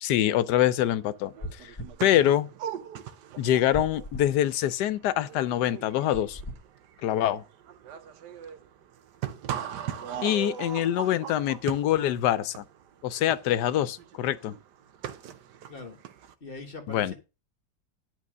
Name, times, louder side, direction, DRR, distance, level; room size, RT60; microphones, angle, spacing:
voice 1, 0.0-1.7 2.0-2.5 3.4-6.4 7.0-7.4 10.2-12.6 13.0-14.5 16.9-17.1, left 12 dB, 85° left, 1.2 m, -25 dB
sound 1, 1.0-1.1 1.3-16.3, right 9 dB, 90° right, 1.4 m, -40 dB
sound 2, 1.4-2.0 3.7-4.3 6.1-6.6, equal, 15° left, 1.4 m, -38 dB
voice 2, 15.7-16.0 16.4-17.1, left 3 dB, 35° left, 1.5 m, -42 dB
11.0 x 4.1 x 6.2 m
omnidirectional pair, 1.8 m